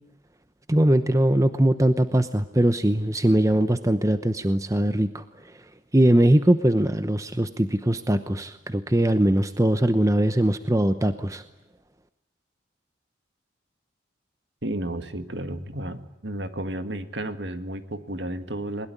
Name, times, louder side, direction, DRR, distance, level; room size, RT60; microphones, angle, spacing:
voice 1, 0.7-5.2 5.9-11.4, right 1 dB, 15° right, 10 dB, 0.9 m, -21 dB
voice 2, 14.6-18.9, right 1 dB, 60° right, 9 dB, 1.9 m, -32 dB
21.0 x 21.0 x 9.9 m, 0.86 s
head